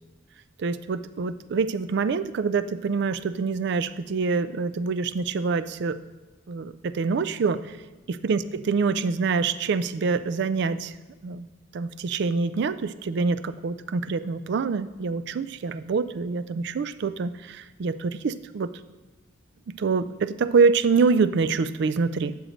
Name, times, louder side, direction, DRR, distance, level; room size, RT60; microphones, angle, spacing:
voice 1, 0.6-6.0 6.5-7.8 8.2-10.9 11.2-11.5 11.7-18.7 19.8-22.4, right 4 dB, 60° right, 14 dB, 0.4 m, -25 dB
12.0 x 6.4 x 3.1 m, 1.2 s
head